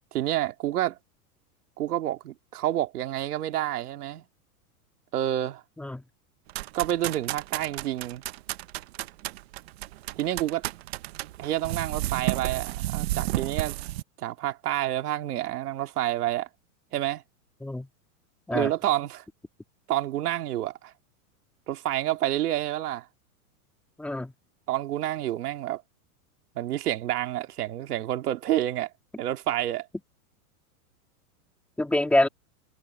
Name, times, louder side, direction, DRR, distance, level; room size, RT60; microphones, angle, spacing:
voice 1, 0.1-1.0 1.8-4.2 5.1-5.6 6.7-8.2 10.2-10.6 11.4-13.8 14.2-16.5 16.9-17.2 18.5-19.2 19.9-20.9 21.7-23.0 24.7-25.8 26.6-28.9 29.2-29.9, right 13 dB, 85° right, 2.5 m, -28 dB
sound 1, 6.5-14.0, right 16 dB, 45° right, 0.8 m, -32 dB
voice 2, 24.0-24.3 31.8-32.3, left 1 dB, 5° left, 2.9 m, -25 dB
supercardioid pair, 175°, 45 cm